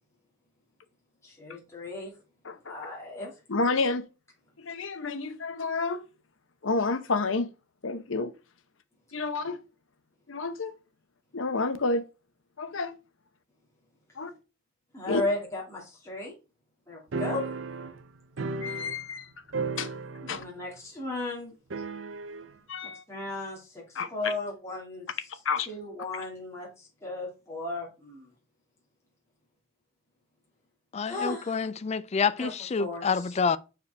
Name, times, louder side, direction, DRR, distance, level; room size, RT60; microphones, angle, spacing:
voice 1, 1.2-2.1 2.6-3.3 14.9-16.3 16.9-17.4 20.2-21.5 22.8-25.1 25.7-28.3 31.0-31.7 32.4-32.5 32.8-33.3, left 2 dB, 15° left, 2.2 m, -35 dB
voice 2, 3.5-4.1 4.6-6.1 6.6-7.5 7.8-8.3 9.1-9.6 10.3-10.7 11.3-12.1 12.6-13.0 14.2-14.3 15.1-15.2 18.6-19.3 19.8-19.9 20.3-20.4 22.7-23.0 23.9-24.3 25.4-25.7, left 3 dB, 85° left, 0.9 m, -29 dB
sound 1, 17.1-19.2 19.5-20.5 20.8-20.9 21.7-22.5, right 3 dB, 70° right, 0.7 m, -35 dB
voice 3, 30.9-33.6, left 5 dB, 35° left, 0.4 m, -28 dB
6.7 x 4.7 x 3.4 m
head